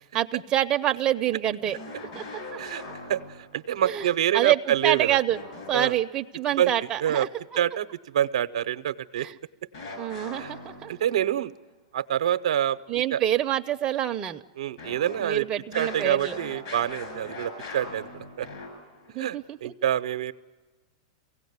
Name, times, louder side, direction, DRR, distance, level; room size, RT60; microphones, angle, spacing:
voice 1, 0.1-1.8 2.1-2.6 3.8-5.4 5.7-7.3 9.2-9.3 10.0-10.9 12.9-14.4 15.2-16.4 19.1-19.7, right 11 dB, 25° right, 5 dB, 0.6 m, -27 dB
sound 1, 1.6-3.6 5.3-6.1 9.7-11.2 14.8-19.1, left 2 dB, 60° left, 7.6 m, -40 dB
voice 2, 3.1-5.2 5.7-5.9 6.6-6.7 7.0-7.3 7.6-9.3 10.3-10.5 10.9-11.5 11.9-12.8 13.1-13.2 14.6-15.5 15.7-18.1 18.4-18.5 19.2-20.3, right 10 dB, 80° right, 11 dB, 0.7 m, -26 dB
23.5 x 17.0 x 9.5 m, 1.3 s
hypercardioid pair, 135°, 3 cm